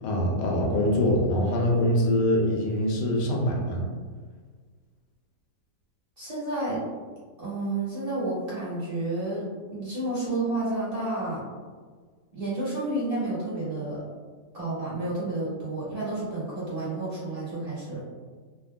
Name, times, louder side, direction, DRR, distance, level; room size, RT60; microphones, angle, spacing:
voice 1, 0.0-3.8, left 1 dB, 85° left, -1 dB, 1.2 m, -24 dB
voice 2, 6.2-6.8 7.4-9.4 9.7-11.4 12.3-14.0 14.5-18.0, right 2 dB, 25° right, -10 dB, 0.9 m, -30 dB
3.4 x 2.1 x 2.3 m, 1.5 s
omnidirectional pair, 1.8 m